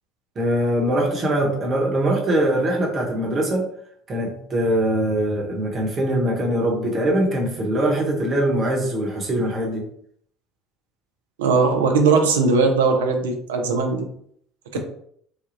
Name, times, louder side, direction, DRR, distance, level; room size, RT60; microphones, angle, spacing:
voice 1, 0.4-3.7 4.1-9.8, right 1 dB, 35° right, -1 dB, 1.1 m, -22 dB
voice 2, 11.4-14.1 14.7-14.8, right 4 dB, 75° right, 4 dB, 0.5 m, -19 dB
3.4 x 2.3 x 2.6 m, 0.66 s
hypercardioid pair, 65°, 0 cm